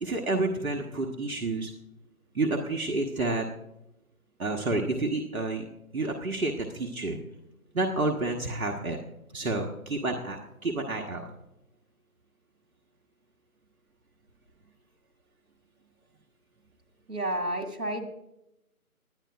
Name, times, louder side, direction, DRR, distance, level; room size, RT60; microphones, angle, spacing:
voice 1, 0.0-1.7 2.3-3.5 4.4-5.6 5.9-7.2 7.7-9.0 9.3-11.3, right 2 dB, 65° right, 2 dB, 1.5 m, -29 dB
voice 2, 17.1-18.1, right 1 dB, 85° right, 5 dB, 2.2 m, -30 dB
20.0 x 10.5 x 2.5 m, 0.87 s
figure-of-eight pair, 165°, 45 cm